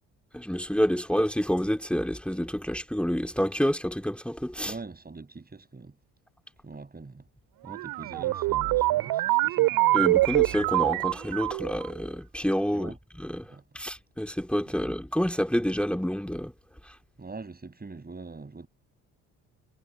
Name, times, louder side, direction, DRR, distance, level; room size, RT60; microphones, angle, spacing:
voice 1, 0.3-4.7 9.9-12.9 13.2-13.5 13.7-16.5, equal, 5° left, 3.2 m, -28 dB
voice 2, 4.6-5.9 6.6-7.2 7.6-9.8 12.7-13.0 13.5-13.6 14.8-15.0 17.2-18.7, right 3 dB, 25° right, 6.4 m, -43 dB
sound 1, 7.7-11.9, right 18 dB, 75° right, 2.4 m, -25 dB
hypercardioid pair, 55°, 37 cm